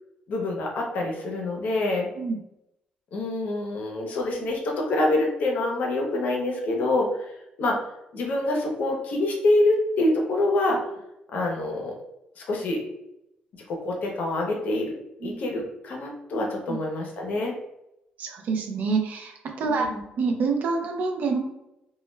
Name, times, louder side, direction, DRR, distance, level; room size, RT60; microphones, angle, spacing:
voice 1, 0.3-2.1 3.1-7.3 7.6-7.8 8.1-10.8 11.3-12.0 12.4-12.8 13.7-14.9 15.2-17.5 19.6-20.0, left 2 dB, 60° left, 1 dB, 0.6 m, -26 dB
voice 2, 18.2-21.4, right 4 dB, 60° right, 3 dB, 0.5 m, -27 dB
2.2 x 2.1 x 3.1 m, 0.86 s
cardioid pair, 140°, 3 cm